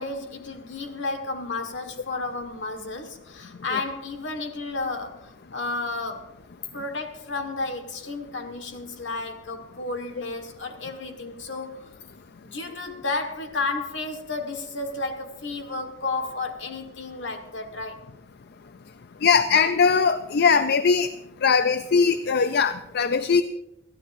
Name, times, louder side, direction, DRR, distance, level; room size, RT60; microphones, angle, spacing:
voice 1, 0.0-6.3 6.7-11.9 12.4-18.0, left 3 dB, 75° left, 5 dB, 1.6 m, -32 dB
voice 2, 19.2-21.1 21.4-23.4, left 5 dB, 60° left, 11 dB, 0.4 m, -20 dB
22.0 x 14.0 x 2.6 m, 0.88 s
head